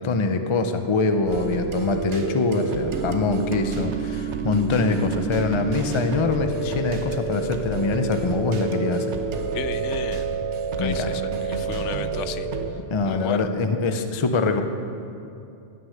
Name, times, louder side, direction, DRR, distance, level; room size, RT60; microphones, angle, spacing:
voice 1, 0.0-9.2 10.8-11.1 12.9-14.6, left 3 dB, 40° left, 7 dB, 0.4 m, -24 dB
sound 1, 1.3-12.7, right 5 dB, 70° right, 1.1 m, -28 dB
voice 2, 9.5-10.2 10.8-12.5 13.0-13.5, left 9 dB, 75° left, 12 dB, 0.9 m, -34 dB
16.0 x 6.4 x 6.4 m, 2.7 s
omnidirectional pair, 1.3 m